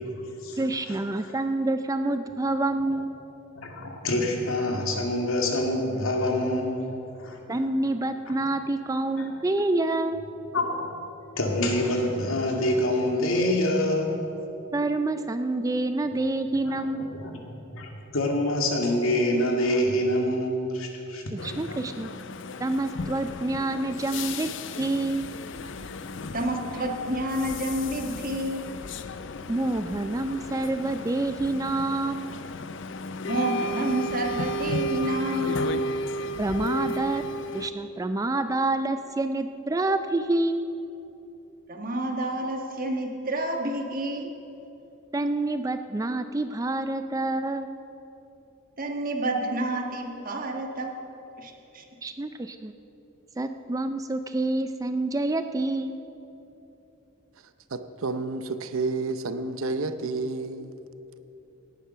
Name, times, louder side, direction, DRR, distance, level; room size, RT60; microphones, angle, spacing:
voice 1, 0.6-3.1 7.5-10.2 14.7-17.1 21.4-22.1 22.6-24.5 24.8-25.3 29.5-32.3 36.4-37.2 37.5-40.6 45.1-47.8 52.0-52.7 53.4-56.0, right 2 dB, 15° right, 9 dB, 0.4 m, -27 dB
voice 2, 3.6-7.4 9.2-9.3 10.5-10.9 11.3-14.2 16.6-17.3 17.7-21.2, left 1 dB, 85° left, 1 dB, 2.2 m, -26 dB
sound 1, 21.4-37.7, left 1 dB, 60° left, 0.6 m, -34 dB
voice 3, 26.3-28.6 33.2-35.8 41.7-44.3 48.8-50.9 51.4-51.8, right 1 dB, 40° right, 3 dB, 1.4 m, -29 dB
voice 4, 57.7-60.8, right 3 dB, 85° right, 11 dB, 0.7 m, -30 dB
17.5 x 10.5 x 5.7 m, 3.0 s
head